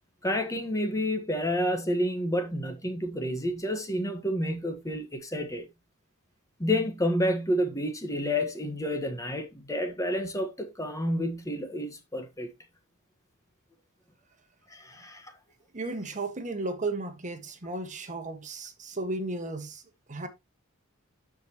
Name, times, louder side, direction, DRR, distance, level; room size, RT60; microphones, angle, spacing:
voice 1, 0.2-5.6 6.6-12.5 14.7-15.3, equal, 15° left, 1.3 m, -29 dB
voice 2, 15.7-19.8 20.1-20.3, right 2 dB, 35° right, 1.5 m, -34 dB
13.0 x 5.1 x 2.9 m
head